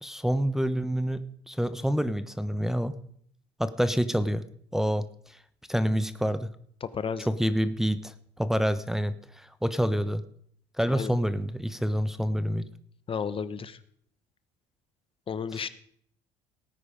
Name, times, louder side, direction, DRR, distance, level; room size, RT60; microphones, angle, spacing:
voice 1, 0.0-3.0 3.6-4.4 4.7-5.0 5.7-6.5 7.3-10.2 10.8-12.7 15.5-15.6, equal, 5° right, 11 dB, 1.0 m, -27 dB
voice 2, 6.8-7.3 10.9-11.1 13.1-13.8 15.3-15.7, left 6 dB, 35° left, 14 dB, 1.1 m, -32 dB
18.0 x 9.6 x 5.1 m, 0.64 s
supercardioid pair, 80°, 16 cm